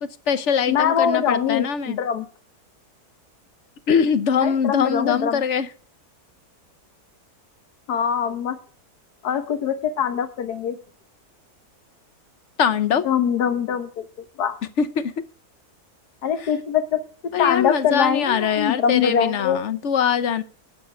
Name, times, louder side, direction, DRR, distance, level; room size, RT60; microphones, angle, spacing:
voice 1, 0.0-2.0 3.9-5.7 12.6-13.1 14.8-15.1 16.4-16.5 17.3-20.4, left 7 dB, 55° left, 13 dB, 1.1 m, -22 dB
voice 2, 0.7-2.3 4.4-5.4 7.9-8.6 9.2-10.7 13.0-14.1 14.4-14.6 16.2-17.0 17.4-19.6, left 8 dB, 85° left, 7 dB, 1.6 m, -23 dB
11.5 x 8.5 x 5.6 m, 0.41 s
omnidirectional pair, 1.7 m